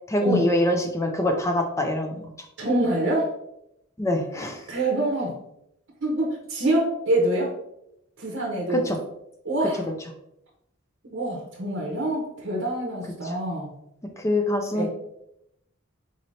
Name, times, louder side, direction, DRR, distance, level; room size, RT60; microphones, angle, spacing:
voice 1, 0.1-2.2 4.0-4.6 8.7-9.0 13.2-13.4 14.2-14.9, left 1 dB, 15° left, 4 dB, 0.4 m, -24 dB
voice 2, 2.6-3.3 4.7-5.3 6.0-7.5 8.2-8.8 9.4-9.8 11.0-13.7 14.7-14.9, right 1 dB, 55° right, -2 dB, 0.7 m, -25 dB
4.1 x 3.2 x 2.6 m, 0.79 s
head